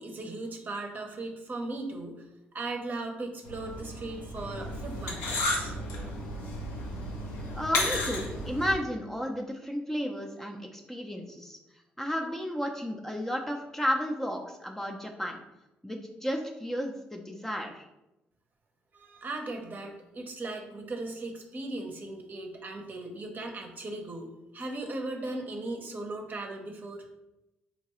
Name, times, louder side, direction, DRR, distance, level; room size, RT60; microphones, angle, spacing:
voice 1, 0.0-2.2 2.5-5.7 18.9-27.0, right 2 dB, 45° right, 3 dB, 0.7 m, -38 dB
sound 1, 3.4-8.7, left 1 dB, 85° left, 0.7 m, -33 dB
voice 2, 7.5-11.6 12.0-15.4 15.8-17.9, equal, 10° left, 2 dB, 0.5 m, -33 dB
3.8 x 2.2 x 3.0 m, 0.94 s
supercardioid pair, 55°, 4 cm